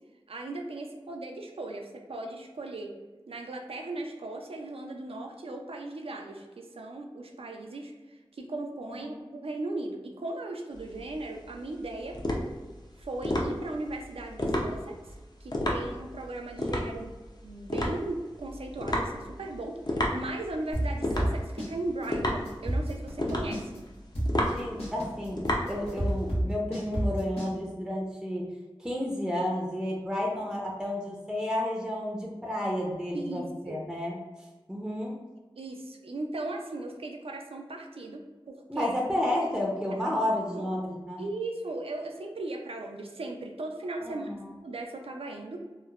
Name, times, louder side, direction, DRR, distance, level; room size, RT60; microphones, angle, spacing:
voice 1, 0.3-2.9 3.3-7.9 8.3-12.2 13.0-15.0 15.4-23.8 33.1-33.8 35.6-38.9 40.5-40.7 41.2-44.3 44.6-45.6, right 2 dB, 80° right, 2 dB, 0.4 m, -37 dB
voice 2, 8.9-9.4 24.5-28.5 28.8-34.2 34.7-35.1 38.7-41.3 44.0-44.5, left 1 dB, 5° right, -2 dB, 0.5 m, -31 dB
sound 1, 10.7-26.3, left 1 dB, 45° left, 0.5 m, -32 dB
sound 2, 20.7-21.7 22.0-22.1 22.5-23.8 24.1-27.5, right 1 dB, 85° left, 0.9 m, -29 dB
2.9 x 2.0 x 2.3 m, 1.2 s
wide cardioid pair, 45°, 10 cm